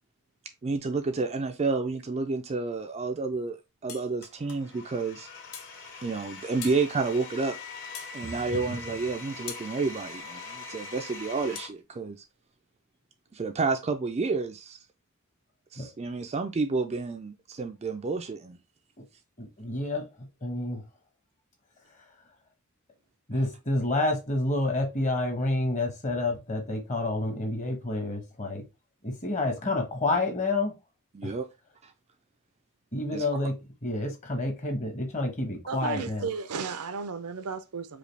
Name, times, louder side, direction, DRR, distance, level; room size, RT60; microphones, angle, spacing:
voice 1, 0.6-3.6 3.8-5.3 6.0-7.6 8.1-12.2 13.3-14.8 15.7-18.6 31.1-31.5 31.8-31.9 33.1-33.2, right 4 dB, 30° right, 0.3 m, -30 dB
sound 1, 3.9-4.1 5.5-5.7 6.6-6.8 7.9-8.2 9.5-9.7 11.5-11.7, left 8 dB, 70° left, 0.8 m, -40 dB
Domestic sounds home sounds, 4.2-11.7, left 3 dB, 55° left, 1.2 m, -43 dB
voice 2, 8.2-8.6 15.8-15.9 19.4-20.8 22.0-22.1 23.3-28.6 29.0-30.7 31.2-31.4 32.9-33.6 33.8-36.3, left 2 dB, 35° left, 1.0 m, -29 dB
voice 3, 35.7-38.0, right 5 dB, 85° right, 0.6 m, -34 dB
4.9 x 2.3 x 3.3 m
head